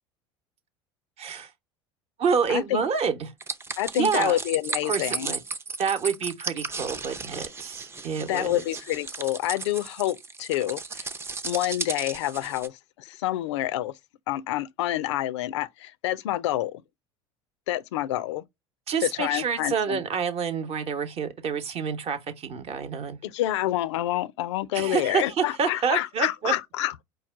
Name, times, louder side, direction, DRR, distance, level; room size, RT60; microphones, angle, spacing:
voice 1, 1.2-1.5 2.2-3.3 3.9-4.3 4.8-5.4 5.8-8.5 18.9-23.2 24.7-26.5, right 6 dB, 45° right, 0.9 m, -28 dB
voice 2, 2.5-2.8 3.8-5.3 8.2-11.1 11.4-12.7 13.0-13.9 14.3-16.8 17.7-18.4 19.0-20.0 23.2-27.0, left 14 dB, 80° left, 0.4 m, -28 dB
sound 1, 3.4-12.7, right 4 dB, 15° right, 0.5 m, -35 dB
4.6 x 2.2 x 3.6 m
hypercardioid pair, 80°, 15 cm